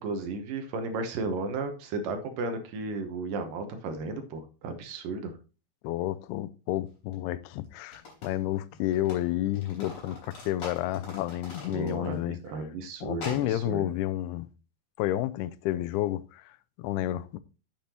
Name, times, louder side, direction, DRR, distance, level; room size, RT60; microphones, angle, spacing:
voice 1, 0.0-5.3 11.7-13.9, right 3 dB, 70° right, 2.4 m, -34 dB
voice 2, 5.8-12.4 13.0-14.5 15.0-17.4, left 14 dB, 85° left, 2.5 m, -31 dB
sound 1, 7.1-7.2 7.8-9.2 9.5-12.2 12.5-12.6 13.1-13.5, left 3 dB, 45° left, 4.5 m, -43 dB
8.6 x 7.5 x 2.9 m
omnidirectional pair, 4.5 m